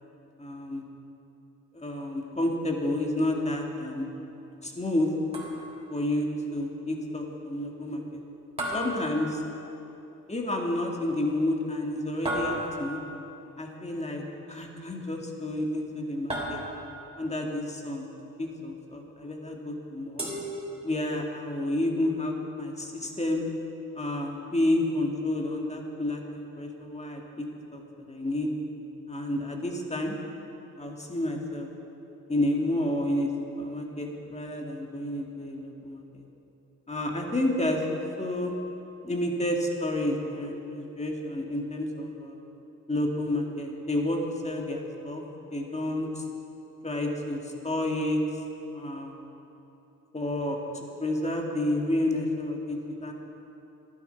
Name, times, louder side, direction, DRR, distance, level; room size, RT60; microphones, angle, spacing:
voice 1, 0.4-0.8 1.7-4.1 4.6-5.1 5.9-8.2 8.7-9.4 10.3-13.0 13.6-14.2 14.5-16.6 17.2-18.1 18.4-20.3 20.8-23.4 24.0-27.5 27.7-27.8 28.1-28.5 29.1-30.2 30.8-31.7 32.3-33.3 33.6-36.2 36.9-38.6 39.0-42.4 42.9-45.2 45.5-46.2 46.8-48.2 48.7-49.1 50.1-53.1, left 1 dB, 20° left, 1 dB, 2.0 m, -30 dB
sound 1, 5.3-6.0 8.6-9.8 12.3-13.1 16.3-17.1 20.2-21.2, equal, 20° right, 3.5 m, -34 dB
11.5 x 11.0 x 5.7 m, 3.0 s
cardioid pair, 65°, 34 cm